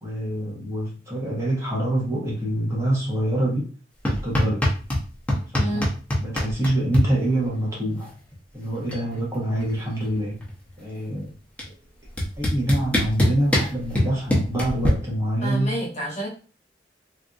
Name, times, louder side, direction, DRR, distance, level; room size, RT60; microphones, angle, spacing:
voice 1, 0.0-3.7 4.1-4.7 5.5-5.9 6.2-8.1 8.5-10.4 10.8-11.3 11.7-11.8 12.4-15.8, right 1 dB, 15° right, -5 dB, 1.0 m, -26 dB
sound 1, 4.0-5.0 5.3-7.0 8.3-8.4 8.7-9.1 9.3-10.7 11.6-11.7 12.2-14.9, left 1 dB, 5° left, 0.7 m, -23 dB
voice 2, 5.5-5.9 15.4-16.3, equal, 35° left, -3 dB, 1.1 m, -29 dB
3.4 x 2.6 x 2.4 m, 0.38 s
head